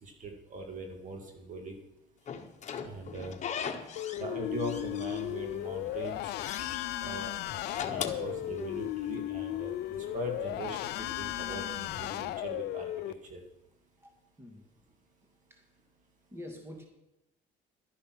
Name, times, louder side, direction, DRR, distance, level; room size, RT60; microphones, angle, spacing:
voice 1, 0.0-1.7 2.8-3.3 4.2-6.3 7.0-7.3 7.8-12.9 13.3-13.4, right 2 dB, 50° right, 3 dB, 2.4 m, -41 dB
Slam / Squeak, 2.3-4.3 4.6-5.6 5.9-6.8 7.5-9.0, left 7 dB, 45° left, 1.3 m, -39 dB
sound 1, 4.0-13.1, left 14 dB, 75° left, 0.6 m, -35 dB
sound 2, 4.5-12.0, right 3 dB, 65° right, 4.2 m, -57 dB
voice 2, 16.3-16.9, left 1 dB, 15° right, 2 dB, 2.3 m, -46 dB
12.0 x 10.5 x 6.2 m, 0.91 s
cardioid pair, 110°, 17 cm